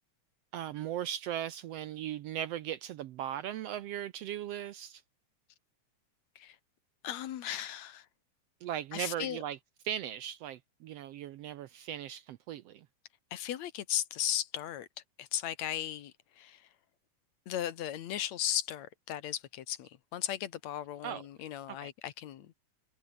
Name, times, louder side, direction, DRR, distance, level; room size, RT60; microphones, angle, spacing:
voice 1, 0.5-5.0 8.6-9.6 9.8-12.9 21.0-21.2 21.7-21.9, right 11 dB, 70° right, 1.6 m, -38 dB
voice 2, 7.0-8.1 8.9-9.4 13.3-14.9 15.2-16.7 17.5-22.5, left 11 dB, 70° left, 2.4 m, -36 dB
omnidirectional pair, 3.4 m